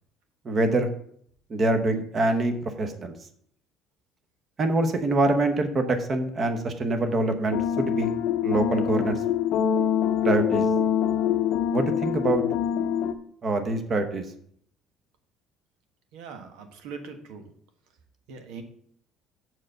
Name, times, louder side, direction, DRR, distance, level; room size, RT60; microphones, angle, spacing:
voice 1, 0.4-0.9 1.5-3.2 4.6-8.1 8.4-9.2 10.2-10.7 11.7-12.4 13.4-14.2, right 2 dB, 25° right, 7 dB, 0.9 m, -25 dB
sound 1, 7.5-13.1, left 9 dB, 65° left, 0.7 m, -25 dB
voice 2, 16.1-17.4 18.3-18.6, right 5 dB, 85° right, 6 dB, 1.4 m, -41 dB
7.5 x 4.7 x 6.5 m, 0.64 s
cardioid pair, 175°, 0 cm